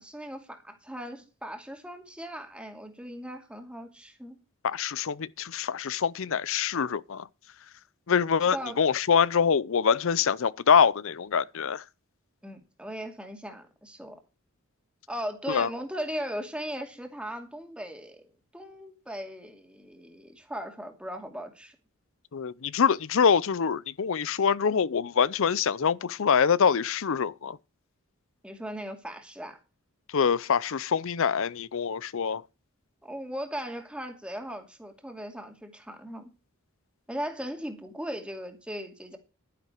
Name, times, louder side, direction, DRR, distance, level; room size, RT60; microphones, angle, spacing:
voice 1, 0.0-4.4 8.5-8.8 12.4-14.2 15.1-18.3 18.5-21.8 28.4-29.6 33.0-36.3 37.1-39.2, equal, 5° right, 2.4 m, -38 dB
voice 2, 4.6-7.3 8.1-11.8 15.5-15.7 22.3-27.6 30.1-32.4, left 6 dB, 65° left, 0.5 m, -25 dB
11.5 x 10.0 x 4.5 m
head